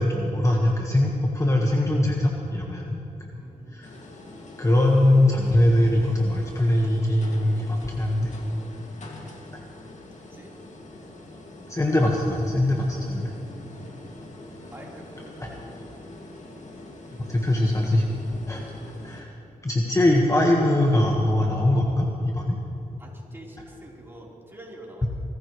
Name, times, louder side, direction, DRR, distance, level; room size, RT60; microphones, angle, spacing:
voice 1, 0.0-3.0 3.7-3.9 4.6-8.4 9.5-9.6 11.7-13.3 15.4-15.5 17.3-18.0 18.5-18.6 19.0-19.3 19.6-22.6, left 1 dB, 20° left, -1 dB, 1.6 m, -22 dB
voice 2, 3.3-3.9 10.3-10.5 14.6-15.3 23.0-25.1, right 1 dB, 15° right, -4 dB, 4.2 m, -45 dB
sound 1, 3.8-19.2, left 2 dB, 55° left, 2.4 m, -44 dB
24.0 x 14.5 x 3.3 m, 2.9 s
cardioid pair, 70°, 15 cm